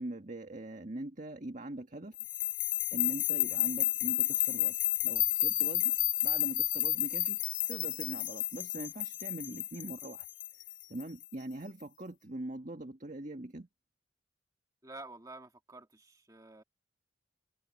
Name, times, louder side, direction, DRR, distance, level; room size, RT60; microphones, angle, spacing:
voice 1, 0.0-2.2 2.9-6.0 6.2-10.3 10.9-13.7, right 1 dB, 40° right, 1.6 m, -42 dB
sound 1, 2.2-11.2, left 15 dB, 85° left, 0.7 m, -31 dB
voice 2, 14.8-16.6, right 2 dB, 20° right, 1.9 m, -49 dB
head